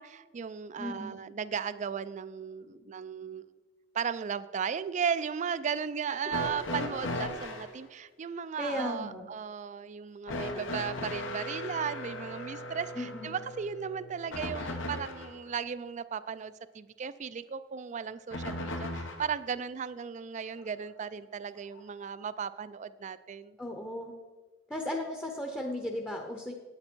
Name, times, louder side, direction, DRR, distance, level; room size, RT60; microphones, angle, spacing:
voice 1, 0.0-3.4 3.9-23.6, right 7 dB, 40° right, 15 dB, 0.3 m, -36 dB
voice 2, 0.8-1.2 8.6-9.3 12.9-13.3 23.6-24.1 24.7-26.5, left 1 dB, 10° left, 2 dB, 0.7 m, -35 dB
sound 1, 6.3-7.7 10.3-15.4 18.3-19.4 20.6-20.7 21.8-21.9, left 1 dB, 90° left, 1.3 m, -37 dB
8.8 x 8.5 x 4.4 m, 1.3 s
head